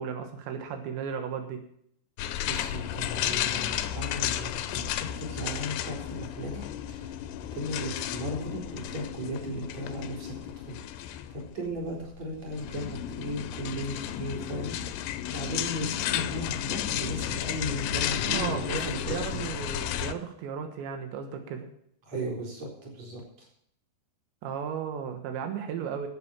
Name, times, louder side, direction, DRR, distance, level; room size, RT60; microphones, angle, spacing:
voice 1, 0.0-1.6 18.2-21.7 24.4-26.1, right 7 dB, 85° right, 6 dB, 3.6 m, -35 dB
sound 1, 2.2-20.1, left 11 dB, 80° left, 2.7 m, -33 dB
voice 2, 2.4-7.2 7.5-19.4 22.1-23.5, equal, 40° right, -1 dB, 5.0 m, -36 dB
13.0 x 8.4 x 7.3 m, 0.68 s
omnidirectional pair, 5.0 m